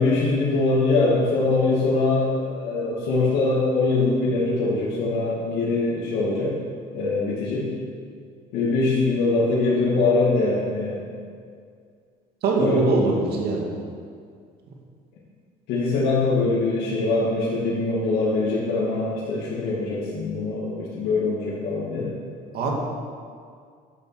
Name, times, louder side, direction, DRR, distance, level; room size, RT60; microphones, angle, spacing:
voice 1, 0.0-6.6 6.9-7.7 8.5-11.0 12.6-12.9 15.7-22.1, left 3 dB, 85° left, -8 dB, 2.5 m, -23 dB
voice 2, 12.4-13.8 22.5-22.7, right 3 dB, 70° right, -1 dB, 2.3 m, -23 dB
11.5 x 7.3 x 6.3 m, 2.1 s
cardioid pair, 110°, 17 cm